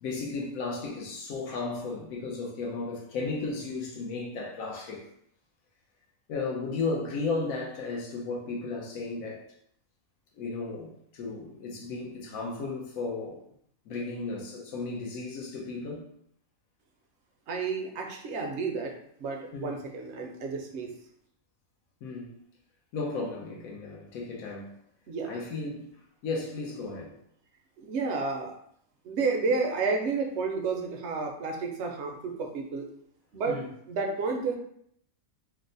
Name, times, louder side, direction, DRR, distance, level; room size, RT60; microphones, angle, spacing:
voice 1, 0.0-5.1 6.3-9.4 10.3-13.4 13.9-16.0 19.5-19.8 22.0-22.4 22.9-24.7 25.2-25.9 26.2-27.1 33.5-33.7, left 3 dB, 90° left, -2 dB, 1.1 m, -34 dB
voice 2, 17.5-18.9 19.2-20.9 25.1-25.4 27.8-28.5 29.0-32.9 33.3-33.6 33.9-34.6, right 4 dB, 65° right, 3 dB, 0.8 m, -31 dB
3.3 x 2.0 x 3.8 m, 0.69 s
omnidirectional pair, 1.4 m